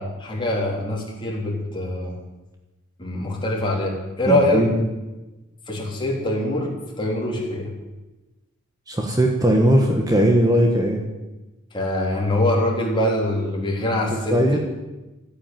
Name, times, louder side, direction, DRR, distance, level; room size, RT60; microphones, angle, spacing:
voice 1, 0.0-2.1 3.0-4.6 5.7-6.7 7.0-7.7 11.7-14.6, left 1 dB, 25° left, -2 dB, 3.8 m, -23 dB
voice 2, 4.3-4.9 8.9-11.0 14.3-14.6, equal, 20° right, 2 dB, 1.5 m, -18 dB
14.0 x 9.7 x 9.3 m, 1.1 s
head